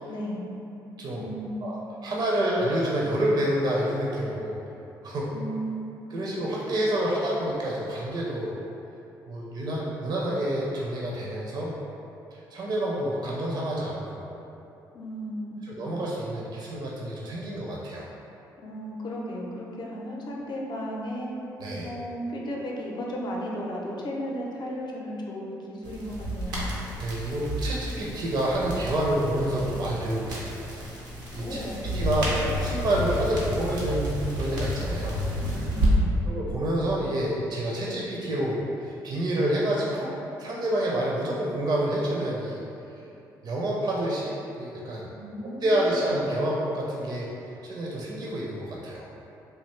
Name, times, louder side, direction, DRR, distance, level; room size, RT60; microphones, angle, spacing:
voice 1, 0.1-0.4 1.1-1.6 5.3-5.9 14.9-15.7 18.6-21.3 21.8-26.7 31.3-32.3 35.6-36.2 45.1-46.1, equal, 50° left, -2 dB, 0.6 m, -35 dB
voice 2, 2.0-4.6 5.0-5.3 6.1-8.6 9.3-11.7 12.3-14.3 15.7-18.1 21.6-21.9 27.0-30.7 31.3-31.6 31.9-32.3 32.6-35.2 36.3-40.1 40.4-42.6 43.4-45.1 45.4-47.3 47.6-49.0, right 1 dB, 45° right, -4 dB, 0.5 m, -28 dB
sound 1, 25.8-35.9, equal, 90° right, 0.6 m, -31 dB
3.3 x 2.4 x 3.2 m, 2.8 s
hypercardioid pair, 45°, 10 cm